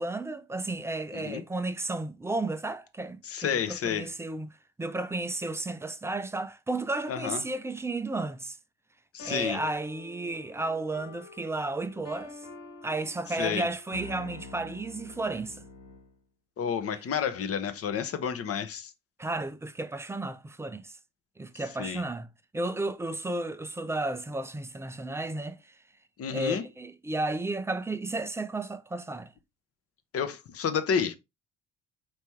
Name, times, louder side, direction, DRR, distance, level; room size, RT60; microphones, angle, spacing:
voice 1, 0.0-4.5 4.8-8.6 9.2-12.4 12.8-15.6 19.2-20.9 21.4-22.3 22.5-25.6 26.3-29.3, right 2 dB, 5° right, 0.4 m, -33 dB
voice 2, 3.2-4.1 7.1-7.4 9.1-9.6 13.3-13.7 16.6-18.9 21.8-22.0 26.2-26.6 30.1-31.2, left 7 dB, 35° left, 0.8 m, -30 dB
sound 1, 9.2-16.2, left 3 dB, 75° left, 1.1 m, -46 dB
4.6 x 3.2 x 3.1 m
figure-of-eight pair, 55°, 39 cm